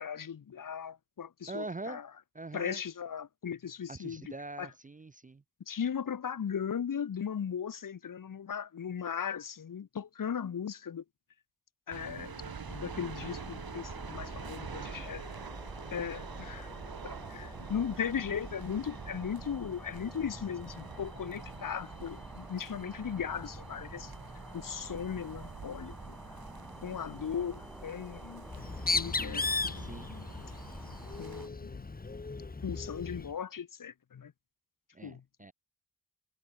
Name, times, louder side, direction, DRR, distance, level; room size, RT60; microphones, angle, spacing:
voice 1, 0.0-2.1 2.5-4.7 5.7-11.0 11.9-15.3 15.9-16.7 17.0-24.1 24.5-26.2 26.8-28.5 28.9-30.3 31.2-31.8 32.6-34.3 35.0-35.2, left 7 dB, 55° left, 1.1 m, -37 dB
voice 2, 1.5-2.0 2.3-2.8 3.9-5.4 29.2-29.4 29.8-30.1 34.9-35.5, right 3 dB, 20° right, 0.6 m, -43 dB
sound 1, 11.9-31.5, right 6 dB, 65° right, 4.5 m, -46 dB
sound 2, 12.6-31.5, equal, ahead, 3.7 m, -48 dB
Bird, 28.5-33.3, left 3 dB, 20° left, 1.2 m, -35 dB
wide cardioid pair, 85°, 39 cm